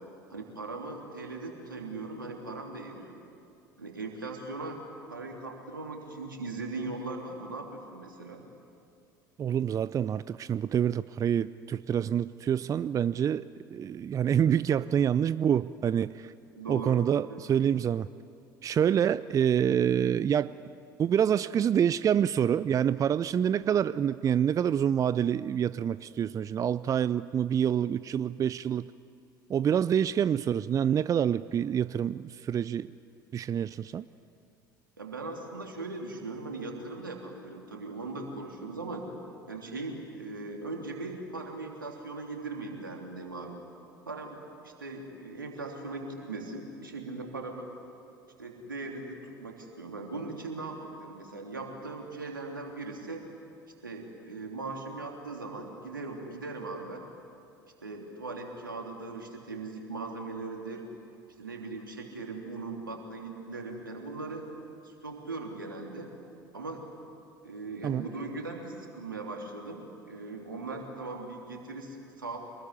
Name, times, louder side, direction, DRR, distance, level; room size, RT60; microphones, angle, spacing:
voice 1, 0.3-3.2 3.8-4.8 5.1-8.4 16.5-17.0 17.3-17.4 35.0-39.1 39.5-43.6 44.0-47.7 48.4-53.2 53.8-57.1 57.8-60.8 61.4-64.5 64.8-66.1 66.5-66.9 67.4-72.4, right 3 dB, 85° right, 2 dB, 3.2 m, -39 dB
voice 2, 9.4-16.3 16.7-18.1 18.6-20.5 21.0-28.9 29.5-32.9 33.3-34.0 67.8-68.1, right 9 dB, 30° right, 16 dB, 0.5 m, -27 dB
27.0 x 20.5 x 9.7 m, 2.5 s
figure-of-eight pair, 65°, 11 cm